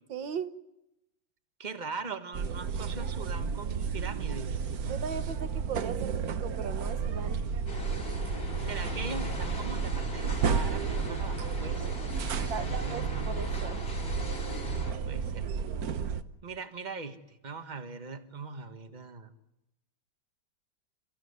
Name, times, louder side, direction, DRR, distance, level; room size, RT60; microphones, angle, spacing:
voice 1, 0.1-0.5 4.9-7.4 12.5-13.8, right 7 dB, 70° right, 9 dB, 1.9 m, -38 dB
voice 2, 1.6-4.6 8.6-13.2 15.1-15.5 16.4-19.3, right 4 dB, 25° right, 8 dB, 1.4 m, -41 dB
sound 1, 2.3-16.2, right 6 dB, 55° right, 1.3 m, -32 dB
Telephone, 3.3-3.8 4.6-5.8 6.6-7.8 8.6-9.8 10.6-11.7 12.6-13.8 14.6-15.1, left 11 dB, 75° left, 2.2 m, -50 dB
sound 2, 7.7-14.9, left 1 dB, 30° left, 3.1 m, -39 dB
29.5 x 15.5 x 9.7 m, 0.91 s
omnidirectional pair, 2.2 m